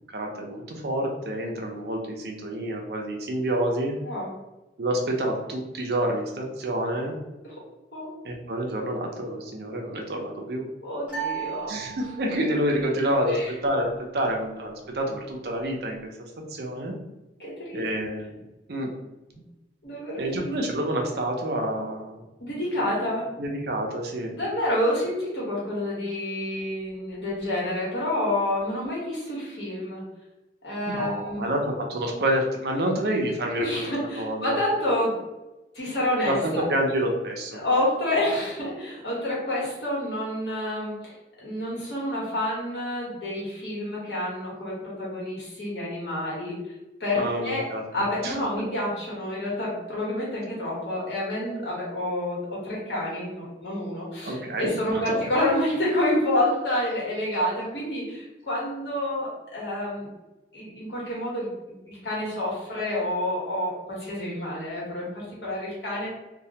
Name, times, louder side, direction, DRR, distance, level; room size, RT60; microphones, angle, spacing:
voice 1, 0.1-4.0 4.8-7.2 8.2-10.6 11.7-17.0 17.7-18.4 18.7-18.9 20.2-22.2 23.4-24.3 30.8-33.8 34.1-34.6 36.2-37.6 47.1-47.8 48.2-48.3 54.3-55.2, right 1 dB, 55° right, 1 dB, 0.5 m, -28 dB
voice 2, 10.8-11.7 13.3-13.5 17.4-17.9 19.8-20.5 22.4-23.2 24.3-30.0 30.6-31.5 33.6-35.2 35.7-36.6 37.5-41.1 41.4-46.6 47.0-47.7 47.9-60.1 60.5-66.1, left 1 dB, 65° left, -6 dB, 1.1 m, -28 dB
sound 1, 11.1-12.6, right 8 dB, 10° right, 0.6 m, -34 dB
2.2 x 2.1 x 2.7 m, 1.0 s
head